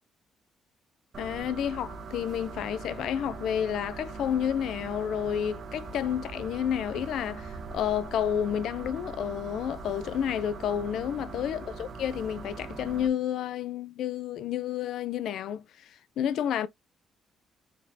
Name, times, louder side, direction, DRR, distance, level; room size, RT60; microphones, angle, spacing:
sound 1, 1.1-13.1, right 4 dB, 55° right, 1.1 m, -41 dB
voice 1, 1.2-16.7, left 9 dB, 75° left, 0.5 m, -30 dB
4.3 x 3.8 x 2.8 m
cardioid pair, 90°, 0 cm